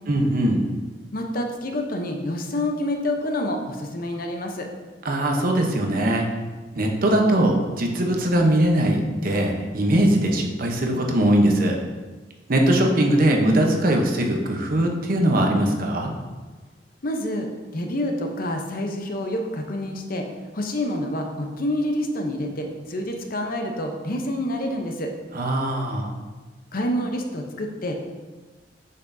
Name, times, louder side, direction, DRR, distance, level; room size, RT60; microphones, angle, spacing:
voice 1, 0.1-0.6 5.0-6.2 6.8-11.8 12.5-16.1 25.3-26.1, right 1 dB, 50° right, 2 dB, 0.8 m, -21 dB
voice 2, 1.1-4.7 17.0-20.3 20.5-25.1 26.7-27.9, left 1 dB, 50° left, 3 dB, 0.8 m, -27 dB
7.6 x 5.8 x 2.7 m, 1.3 s
head